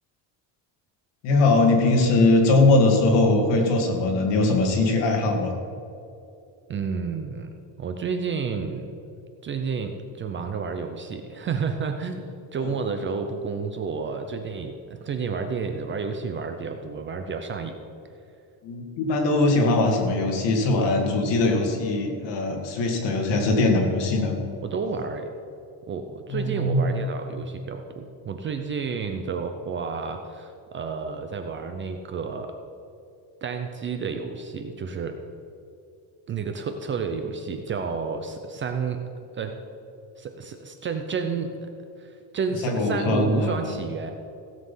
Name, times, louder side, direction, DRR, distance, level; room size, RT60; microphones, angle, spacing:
voice 1, 1.2-5.5 12.6-12.7 18.6-24.3 26.3-26.8 42.6-43.7, left 2 dB, 65° left, 1 dB, 2.4 m, -21 dB
voice 2, 6.7-7.5 7.8-8.9 9.4-17.7 24.6-25.3 25.9-32.6 33.4-35.2 36.3-39.0 39.3-39.6 40.2-41.6 42.0-44.1, right 5 dB, 25° right, 6 dB, 0.5 m, -31 dB
16.5 x 7.6 x 5.5 m, 2.6 s
cardioid pair, 175°, 47 cm